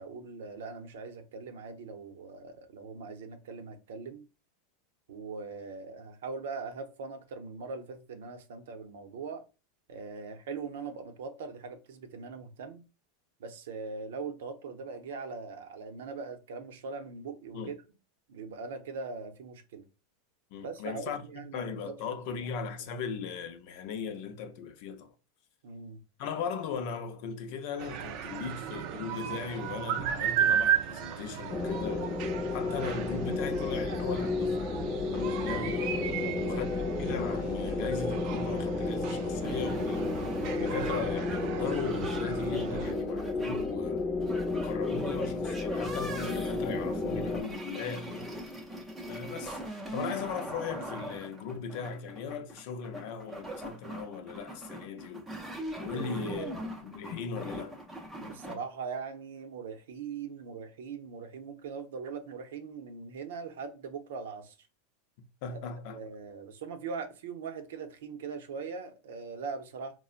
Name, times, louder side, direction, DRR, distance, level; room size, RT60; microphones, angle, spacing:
voice 1, 0.0-4.3 5.1-9.4 9.9-12.8 13.4-17.7 18.3-19.8 20.6-22.5 25.6-26.0 36.2-36.7 55.9-56.6 58.2-64.5 65.9-69.9, right 5 dB, 85° right, 0.6 m, -41 dB
voice 2, 20.5-21.2 21.5-25.1 26.2-36.0 36.4-36.7 37.0-40.1 40.5-44.0 44.5-48.3 49.1-49.6 49.9-55.3 55.8-56.5 56.8-57.8 65.4-66.0, left 6 dB, 55° left, 0.5 m, -38 dB
sound 1, 27.8-42.9, right 9 dB, 45° right, 0.4 m, -35 dB
sound 2, 31.5-47.4, left 3 dB, 25° left, 0.8 m, -32 dB
sound 3, 39.4-58.5, right 1 dB, 5° right, 0.6 m, -40 dB
3.8 x 2.1 x 2.4 m
supercardioid pair, 145°, 0 cm